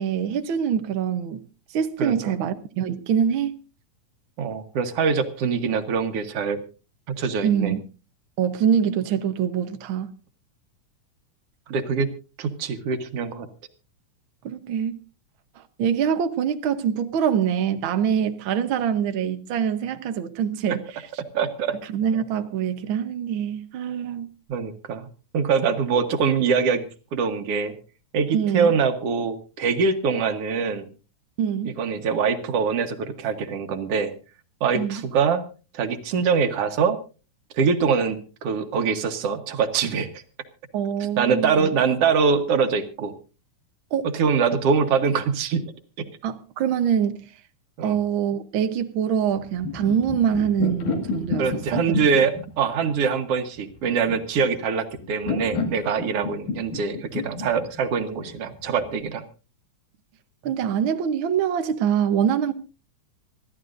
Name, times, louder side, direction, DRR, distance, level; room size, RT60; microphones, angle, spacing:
voice 1, 0.0-1.4 1.7-3.6 7.4-7.8 8.4-10.1 14.4-14.9 15.6-20.8 21.9-24.3 28.3-28.7 31.4-31.8 34.7-35.0 40.7-41.7 43.9-44.0 46.2-47.3 47.8-52.0 60.4-62.5, right 8 dB, 80° right, 1.1 m, -24 dB
voice 2, 4.4-6.6 7.2-7.7 11.7-12.1 12.4-13.5 21.3-21.7 24.5-25.1 25.3-27.8 28.1-30.9 31.8-34.1 34.6-35.4 35.7-37.0 37.5-40.2 41.2-43.1 44.1-45.6 47.8-48.0 51.4-59.2, right 5 dB, 60° right, 2.0 m, -23 dB
sound 1, 49.3-59.0, left 4 dB, 85° left, 3.7 m, -31 dB
26.0 x 13.5 x 2.6 m
omnidirectional pair, 3.6 m